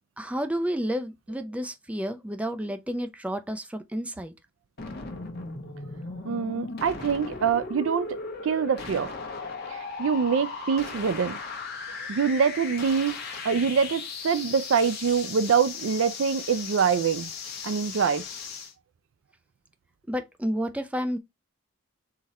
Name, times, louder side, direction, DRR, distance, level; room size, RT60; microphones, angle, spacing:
voice 1, 0.2-4.3 20.1-21.2, equal, 5° right, 0.5 m, -30 dB
sound 1, 4.8-18.7, left 4 dB, 50° left, 1.0 m, -37 dB
voice 2, 6.2-8.1 8.4-9.1 9.7-11.4 12.1-13.1 13.4-17.3 17.6-18.2, right 6 dB, 75° right, 0.4 m, -25 dB
3.9 x 3.0 x 4.1 m
head